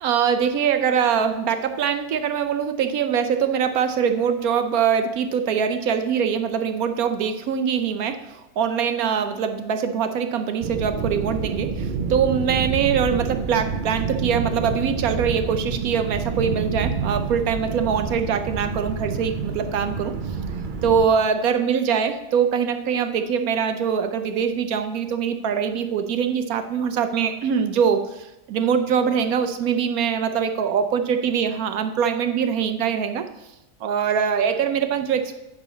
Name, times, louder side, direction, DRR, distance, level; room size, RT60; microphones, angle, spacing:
voice 1, 0.0-20.1 20.8-33.2 33.8-35.4, right 7 dB, 70° right, 8 dB, 1.0 m, -23 dB
sound 1, 10.6-21.1, right 5 dB, 55° right, 0.5 m, -28 dB
9.8 x 3.8 x 7.0 m, 0.93 s
omnidirectional pair, 1.7 m